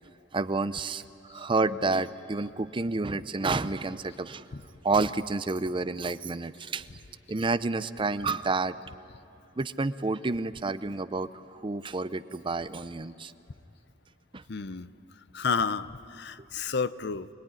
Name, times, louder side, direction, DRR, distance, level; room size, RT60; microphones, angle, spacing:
voice 1, 0.3-4.5 4.8-6.9 7.3-8.8 9.6-13.3 14.3-14.4, right 3 dB, 25° right, 13 dB, 0.6 m, -29 dB
voice 2, 14.5-14.9 15.3-17.3, left 5 dB, 60° left, 14 dB, 0.7 m, -31 dB
26.0 x 21.0 x 9.9 m, 2.8 s
head